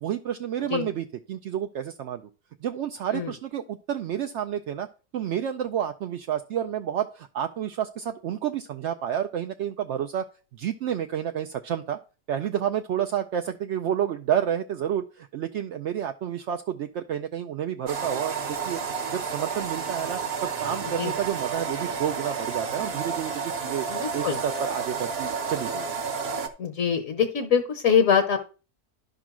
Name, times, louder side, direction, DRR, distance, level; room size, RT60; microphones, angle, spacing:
voice 1, 0.0-2.2 2.6-4.9 5.1-10.3 10.5-12.0 12.3-18.8 19.1-23.9 24.1-25.8, right 9 dB, 65° right, 7 dB, 0.7 m, -30 dB
sound 1, 17.9-26.5, right 5 dB, 45° right, 1.1 m, -31 dB
voice 2, 23.9-24.4 26.6-28.4, left 7 dB, 60° left, 6 dB, 1.3 m, -23 dB
11.5 x 3.8 x 6.0 m, 0.34 s
omnidirectional pair, 1.6 m